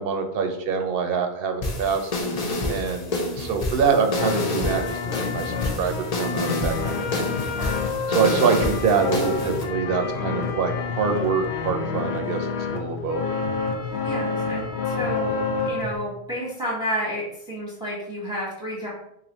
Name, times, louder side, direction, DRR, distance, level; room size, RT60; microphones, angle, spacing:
voice 1, 0.0-2.1 2.7-5.0 5.3-7.3 8.1-13.2, right 5 dB, 65° right, 5 dB, 0.7 m, -25 dB
sound 1, 1.6-9.6, left 2 dB, 45° left, 0.6 m, -29 dB
sound 2, 4.2-16.0, left 4 dB, 90° left, 0.9 m, -28 dB
voice 2, 14.0-15.4 15.7-18.9, equal, 5° right, -5 dB, 0.9 m, -31 dB
3.2 x 2.6 x 3.9 m, 0.80 s
omnidirectional pair, 1.1 m